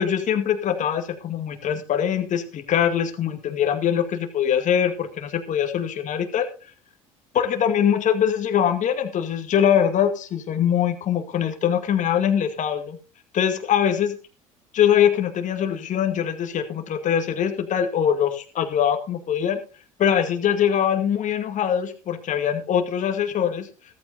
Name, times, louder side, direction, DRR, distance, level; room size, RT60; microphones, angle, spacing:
voice 1, 0.0-6.5 7.3-13.0 13.3-14.2 14.7-19.6 20.0-23.7, left 9 dB, 45° left, 6 dB, 2.1 m, -22 dB
15.0 x 14.5 x 2.6 m, 0.32 s
hypercardioid pair, 65°, 17 cm